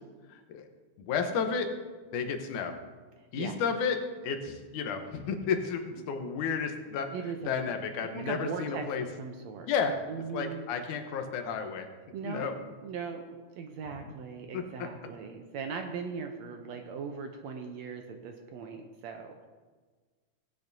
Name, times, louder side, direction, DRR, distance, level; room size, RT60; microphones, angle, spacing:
voice 1, 0.3-0.6 1.0-1.7 2.1-2.7 3.3-7.1 7.4-9.1 9.7-10.0 10.3-11.9 12.2-12.5 14.5-14.9, left 6 dB, 75° left, 5 dB, 2.3 m, -32 dB
voice 2, 7.1-7.5 8.1-8.8 9.2-9.7 10.1-10.6 12.1-12.5 12.8-19.5, right 5 dB, 75° right, 4 dB, 1.7 m, -39 dB
17.5 x 8.7 x 2.7 m, 1.4 s
omnidirectional pair, 3.6 m